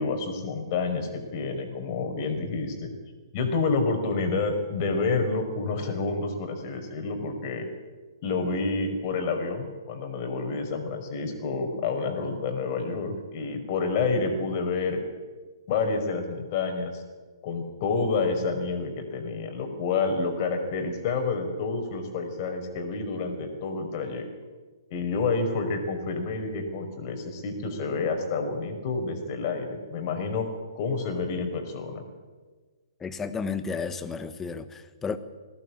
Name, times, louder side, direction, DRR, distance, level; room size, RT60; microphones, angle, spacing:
voice 1, 0.0-2.9 3.3-7.7 8.2-15.0 15.7-17.0 17.4-24.3 24.9-32.0, left 4 dB, 35° left, 5 dB, 5.3 m, -29 dB
voice 2, 33.0-35.2, left 5 dB, 10° left, 12 dB, 1.4 m, -32 dB
22.0 x 18.0 x 8.7 m, 1.4 s
figure-of-eight pair, 125°, 2 cm